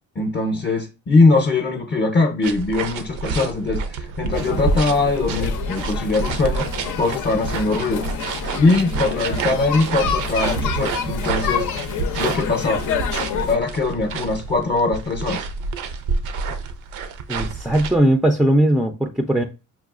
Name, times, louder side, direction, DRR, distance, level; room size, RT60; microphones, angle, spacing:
voice 1, 0.2-6.7 7.0-8.0 8.6-11.9 12.2-12.8 13.5-15.5, left 3 dB, 35° left, 0.6 m, -21 dB
sound 1, 2.4-18.0, right 4 dB, 80° right, 0.5 m, -28 dB
sound 2, 4.3-13.6, left 7 dB, 80° left, 0.6 m, -28 dB
voice 2, 17.3-19.4, right 1 dB, ahead, 0.3 m, -18 dB
5.7 x 2.3 x 2.4 m
cardioid pair, 90°, 30 cm